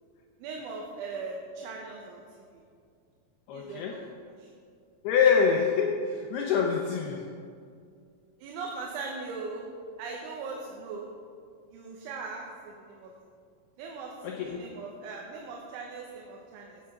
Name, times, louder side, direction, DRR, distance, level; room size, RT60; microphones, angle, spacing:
voice 1, 0.4-2.6 3.5-4.1 4.4-4.5 8.4-9.7 10.0-11.1 11.7-13.1 13.8-16.8, right 4 dB, 75° right, 0 dB, 3.3 m, -40 dB
voice 2, 3.5-3.9 5.0-7.2 14.2-14.6, left 6 dB, 85° left, 0 dB, 2.2 m, -25 dB
16.0 x 7.6 x 5.7 m, 2.3 s
omnidirectional pair, 5.8 m